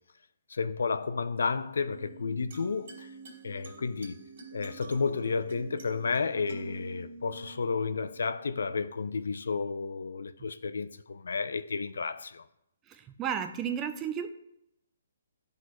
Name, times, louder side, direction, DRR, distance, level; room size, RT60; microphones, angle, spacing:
voice 1, 0.5-3.1 3.4-4.2 4.5-12.5, left 4 dB, 90° left, 0.4 m, -32 dB
sound 1, 1.9-8.9, right 3 dB, 55° right, 2.3 m, -48 dB
voice 2, 12.9-14.3, right 8 dB, 15° right, 0.5 m, -33 dB
11.5 x 4.0 x 3.0 m
hypercardioid pair, 165°, 0 cm